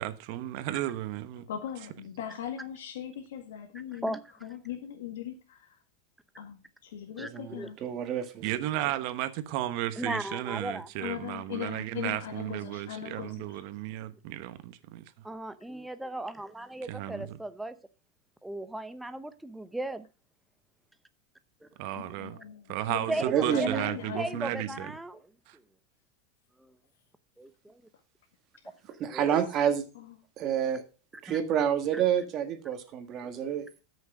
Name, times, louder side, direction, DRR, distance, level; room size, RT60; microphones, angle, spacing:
voice 1, 0.0-1.4 8.4-15.0 16.9-17.4 21.8-22.4 22.7-24.9 25.5-25.6, right 14 dB, 55° right, 1.1 m, -34 dB
voice 2, 1.5-4.1 4.4-5.8 6.4-7.8 11.0-13.6 21.9-24.8 28.6-28.8 29.9-30.2, left 10 dB, 90° left, 1.8 m, -40 dB
voice 3, 7.2-8.3 23.2-23.8 29.0-29.8 30.4-30.8 31.2-33.7, right 9 dB, 35° right, 1.6 m, -28 dB
voice 4, 10.0-10.9 15.2-17.7 18.4-20.1 21.6-21.7 23.1-25.2 26.6-26.7 27.4-27.8 29.1-29.4 31.3-31.4 31.9-32.0 33.2-33.5, right 1 dB, 5° right, 0.7 m, -36 dB
13.5 x 6.5 x 4.9 m
supercardioid pair, 155°, 0 cm